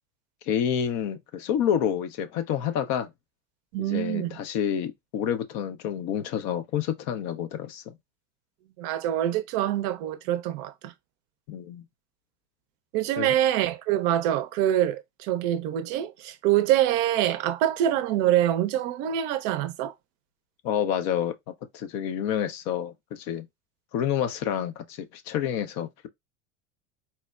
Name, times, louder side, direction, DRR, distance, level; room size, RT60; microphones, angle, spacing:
voice 1, 0.5-3.1 3.8-7.9 11.5-11.8 13.2-13.4 20.6-21.3 21.7-23.5 23.9-26.1, left 9 dB, 45° left, 0.5 m, -28 dB
voice 2, 3.7-4.4 8.8-10.9 12.9-19.9, right 12 dB, 50° right, 0.5 m, -25 dB
4.2 x 2.1 x 2.3 m
hypercardioid pair, 85°, 38 cm